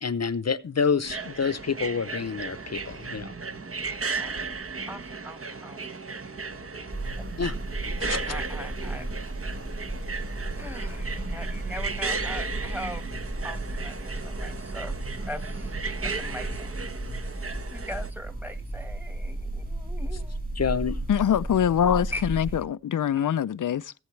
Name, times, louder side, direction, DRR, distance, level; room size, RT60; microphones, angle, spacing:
voice 1, 0.0-3.3 7.4-7.5 8.0-8.3 20.6-21.0, left 6 dB, 60° left, 0.7 m, -28 dB
sound 1, 1.0-18.1, right 4 dB, 50° right, 1.1 m, -35 dB
voice 2, 4.9-6.0 8.3-9.1 10.5-13.1 13.4-15.8 16.0-16.8 17.7-20.4 22.1-22.2, left 1 dB, 5° right, 1.4 m, -40 dB
sound 2, 6.9-22.6, right 1 dB, 30° right, 3.8 m, -34 dB
voice 3, 21.1-23.9, left 9 dB, 90° left, 0.5 m, -24 dB
18.0 x 7.9 x 3.2 m
wide cardioid pair, 80°, 30 cm